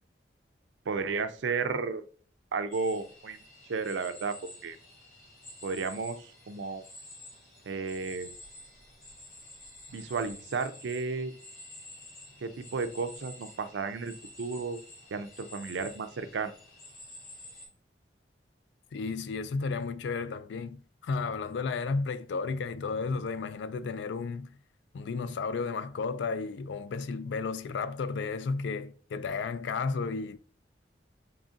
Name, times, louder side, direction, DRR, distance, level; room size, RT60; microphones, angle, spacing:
voice 1, 0.9-2.0 2.5-3.4 3.7-4.3 4.6-4.8 5.6-6.8 7.7-8.3 9.9-11.3 12.4-14.8 15.1-16.5, right 4 dB, 90° right, 0.4 m, -33 dB
sound 1, 2.7-17.7, left 1 dB, 55° left, 1.9 m, -50 dB
voice 2, 18.9-24.6 24.9-30.4, left 4 dB, 80° left, 0.3 m, -33 dB
3.9 x 3.4 x 2.4 m
head